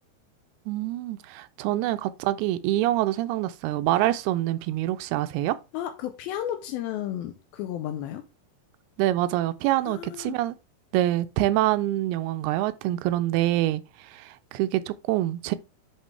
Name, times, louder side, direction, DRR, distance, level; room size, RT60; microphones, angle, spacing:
voice 1, 0.7-5.6 9.0-10.6 10.9-15.6, right 14 dB, 85° right, 2.4 m, -26 dB
voice 2, 5.7-8.2 9.9-10.4, left 11 dB, 85° left, 2.2 m, -33 dB
10.5 x 4.4 x 3.3 m
omnidirectional pair, 4.9 m